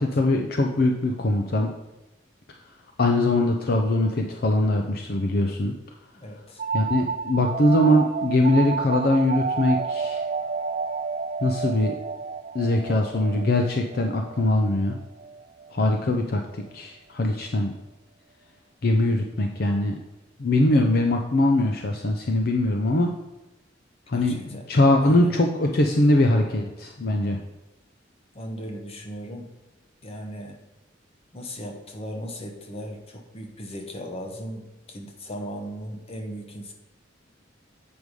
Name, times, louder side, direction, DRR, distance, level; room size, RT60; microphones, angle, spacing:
voice 1, 0.2-1.7 3.0-5.7 6.7-10.2 11.4-12.0 12.5-15.0 15.7-16.4 16.7-17.7 18.8-20.0 20.4-23.1 24.1-27.4, left 1 dB, 55° left, 3 dB, 0.6 m, -22 dB
voice 2, 6.2-6.6 24.1-24.6 25.0-25.3 28.3-29.5 30.0-30.6 31.3-36.7, equal, 35° left, 3 dB, 1.0 m, -37 dB
sound 1, 6.6-16.0, right 5 dB, 40° right, 0.4 m, -31 dB
7.9 x 5.3 x 4.8 m, 1.0 s
head